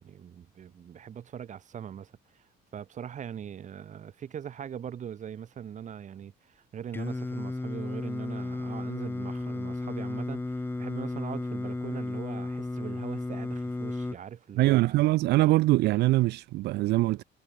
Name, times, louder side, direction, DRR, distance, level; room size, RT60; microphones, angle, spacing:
voice 1, 0.0-15.0, right 8 dB, 45° right, 2.6 m, -41 dB
Singing, 6.9-14.2, left 2 dB, 15° left, 3.7 m, -34 dB
voice 2, 14.6-17.2, right 18 dB, 80° right, 0.9 m, -23 dB
cardioid pair, 110°, 17 cm